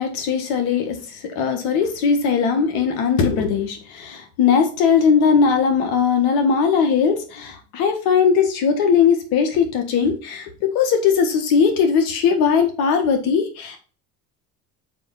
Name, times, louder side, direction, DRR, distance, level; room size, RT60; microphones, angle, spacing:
voice 1, 0.0-10.5 10.7-13.8, left 6 dB, 75° left, 6 dB, 1.7 m, -19 dB
5.4 x 4.4 x 5.7 m, 0.36 s
supercardioid pair, 90°, 37 cm